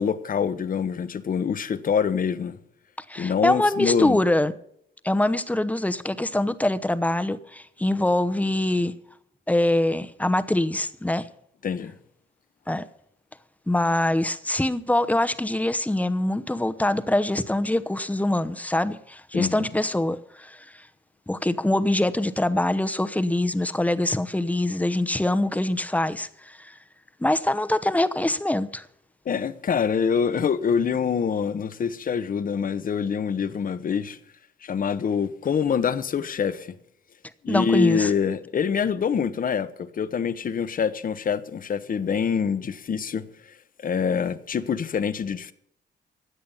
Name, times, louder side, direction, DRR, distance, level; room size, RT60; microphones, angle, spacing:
voice 1, 0.0-2.6 3.2-4.2 11.6-11.9 19.3-19.7 29.2-34.2 34.6-36.7 37.4-45.5, left 6 dB, 45° left, 1.1 m, -25 dB
voice 2, 3.1-4.5 5.0-8.9 9.5-11.3 12.7-12.9 13.7-20.8 21.3-26.7 27.2-28.9 37.5-38.1, left 1 dB, 5° left, 0.9 m, -24 dB
16.0 x 10.0 x 5.6 m
cardioid pair, 110°, 19 cm